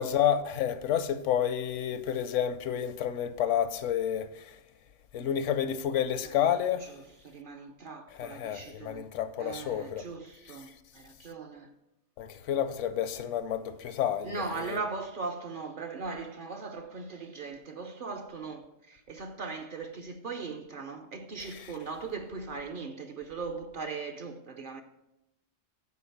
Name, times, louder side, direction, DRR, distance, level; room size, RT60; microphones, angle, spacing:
voice 1, 0.0-4.4 5.1-6.9 8.1-10.1 12.2-14.8 21.4-21.7, left 9 dB, 75° left, 0.9 m, -30 dB
voice 2, 7.2-9.0 9.4-10.7 10.9-11.7 14.2-24.8, right 4 dB, 55° right, 0.6 m, -39 dB
8.5 x 4.5 x 5.7 m
omnidirectional pair, 1.3 m